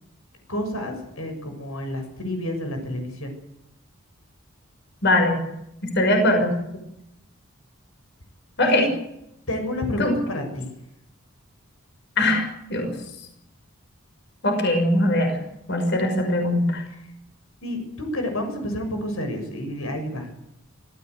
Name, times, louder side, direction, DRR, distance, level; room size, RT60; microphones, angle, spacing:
voice 1, 0.5-3.3 8.6-8.9 9.5-10.7 16.9-17.1 17.6-20.3, left 1 dB, 85° left, 5 dB, 6.9 m, -30 dB
voice 2, 5.0-5.4 5.9-6.5 8.6-8.9 10.0-10.1 12.2-12.4 12.7-13.0 14.4-15.4 15.7-16.8, left 1 dB, 55° left, 4 dB, 6.3 m, -20 dB
26.5 x 15.5 x 8.2 m, 0.83 s
head